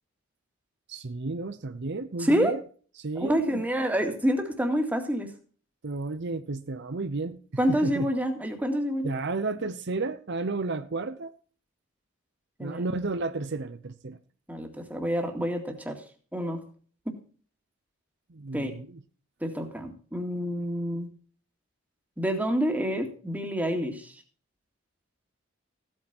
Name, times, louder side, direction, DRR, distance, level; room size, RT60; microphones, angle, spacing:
voice 1, 0.9-2.6 3.0-3.6 5.8-8.1 9.0-11.3 12.6-14.2 18.3-19.0, right 3 dB, 60° right, 11 dB, 0.8 m, -32 dB
voice 2, 2.2-2.5 3.2-5.3 7.6-9.1 12.6-12.8 14.5-16.0 16.3-16.6 17.1-17.2 18.5-18.7 19.4-21.1 22.2-24.1, equal, 10° right, 4 dB, 2.2 m, -27 dB
15.0 x 9.0 x 4.4 m, 0.42 s
head